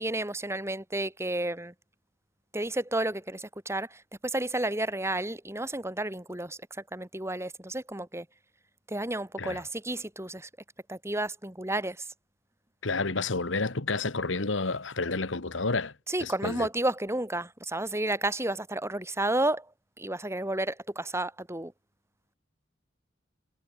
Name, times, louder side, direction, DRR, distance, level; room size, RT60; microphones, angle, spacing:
voice 1, 0.0-1.7 2.5-6.6 6.9-8.3 8.9-10.5 10.9-12.0 16.1-19.7 20.0-21.7, right 1 dB, 15° right, 5.2 m, -31 dB
voice 2, 12.8-15.9 16.2-16.7, left 3 dB, 80° left, 1.7 m, -30 dB
head